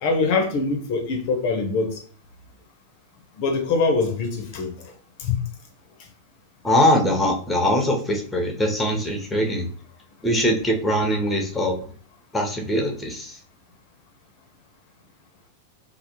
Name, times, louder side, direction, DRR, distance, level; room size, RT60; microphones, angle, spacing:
voice 1, 0.0-2.0 3.4-4.7 5.2-5.4, left 4 dB, 45° left, 0.5 m, -23 dB
voice 2, 6.6-9.7 10.2-11.7 12.3-13.4, equal, 5° left, 0.7 m, -22 dB
3.3 x 2.0 x 2.8 m
figure-of-eight pair, 90°, 0 cm